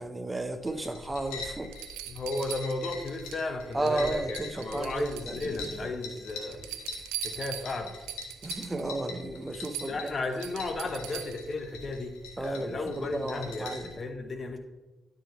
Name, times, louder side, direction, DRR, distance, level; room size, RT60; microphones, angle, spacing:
voice 1, 0.0-1.7 3.7-5.9 8.4-10.1 12.4-13.9, right 2 dB, 25° right, 8 dB, 0.9 m, -33 dB
sound 1, 0.6-13.9, left 4 dB, 90° left, 1.5 m, -43 dB
sound 2, 1.0-1.1 1.7-3.4 3.7-4.1 4.3-5.8 6.2-8.9 9.3-9.4 9.6-11.5 13.2-13.3, right 14 dB, 85° right, 0.4 m, -41 dB
voice 2, 2.1-6.7 7.2-7.9 9.8-14.6, left 2 dB, 50° left, 7 dB, 1.1 m, -34 dB
12.5 x 4.9 x 3.1 m, 1.2 s
hypercardioid pair, 45°, 0 cm